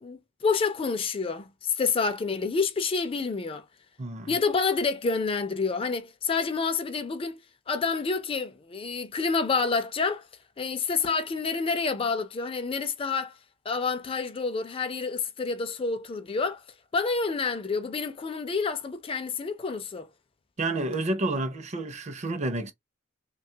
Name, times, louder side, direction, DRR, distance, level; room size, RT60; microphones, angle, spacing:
voice 1, 0.0-3.6 4.3-7.4 7.7-10.3 10.6-13.3 13.7-16.6 16.9-20.1, left 4 dB, 30° left, 0.4 m, -28 dB
voice 2, 4.0-4.3 20.6-22.7, right 2 dB, 35° right, 0.6 m, -29 dB
3.1 x 2.3 x 2.7 m
head